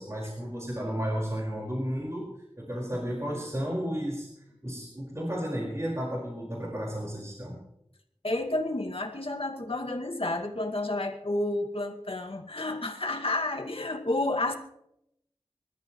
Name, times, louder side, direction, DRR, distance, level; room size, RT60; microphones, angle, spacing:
voice 1, 0.0-2.3 2.6-4.3 4.6-7.6, equal, 30° right, -3 dB, 5.1 m, -33 dB
voice 2, 8.2-14.5, left 2 dB, 65° left, 2 dB, 2.2 m, -30 dB
26.5 x 13.5 x 3.2 m, 0.78 s
wide cardioid pair, 45°, 10 cm